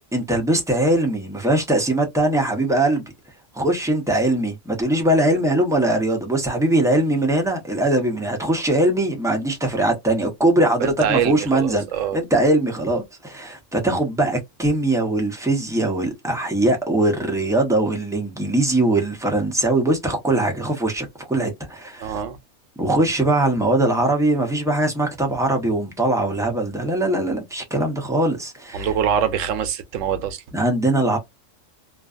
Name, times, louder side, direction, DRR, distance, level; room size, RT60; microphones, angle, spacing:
voice 1, 0.1-3.1 3.5-11.9 12.1-22.2 22.8-28.9 30.5-31.2, right 1 dB, 5° right, 0.5 m, -21 dB
voice 2, 10.8-12.2 22.0-22.4 28.7-30.4, right 8 dB, 85° right, 1.0 m, -24 dB
2.5 x 2.2 x 2.4 m
omnidirectional pair, 1.3 m